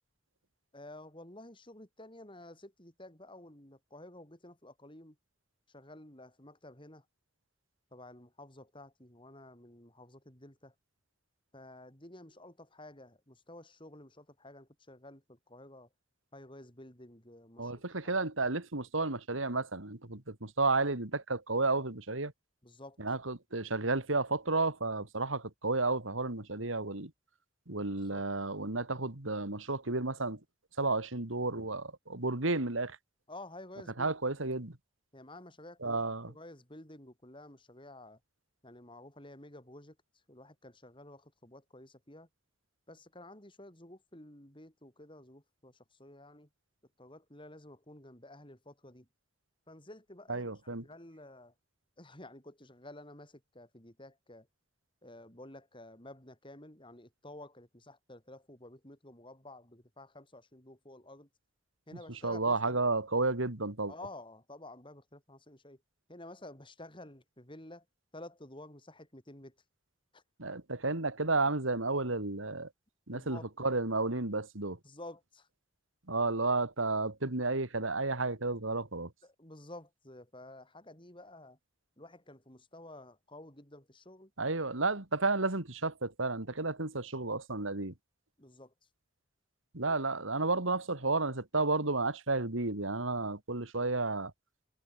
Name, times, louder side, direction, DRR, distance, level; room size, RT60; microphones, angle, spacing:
voice 1, 0.7-5.2 5.7-7.0 7.9-10.7 11.5-15.9 16.3-18.1 22.6-23.0 27.8-28.2 33.3-34.1 35.1-38.2 38.6-40.0 40.3-42.3 42.9-46.5 47.0-49.1 49.7-51.5 52.0-54.5 55.0-61.3 61.9-62.8 63.9-65.8 66.1-67.8 68.1-69.5 70.1-70.2 73.1-73.5 74.8-75.5 79.2-81.6 82.0-84.3 88.4-88.7 89.8-89.9, left 1 dB, 25° left, 6.0 m, -51 dB
voice 2, 17.6-22.3 23.0-27.1 27.7-30.4 30.8-33.0 34.0-34.8 35.8-36.3 50.3-50.8 62.1-63.9 70.4-72.7 73.1-74.8 76.1-79.1 84.4-87.9 89.7-94.3, right 3 dB, 90° right, 2.8 m, -32 dB
head